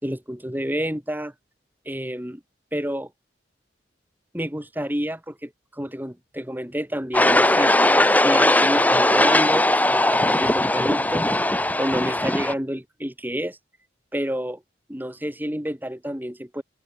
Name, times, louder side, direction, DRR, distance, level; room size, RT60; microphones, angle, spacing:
voice 1, 0.0-1.3 1.9-2.4 2.7-3.1 4.3-11.3 11.8-13.6 14.1-14.6 14.9-16.6, equal, 10° right, 4.3 m, -29 dB
sound 1, 7.1-12.5, left 1 dB, 10° left, 2.7 m, -19 dB
open air
head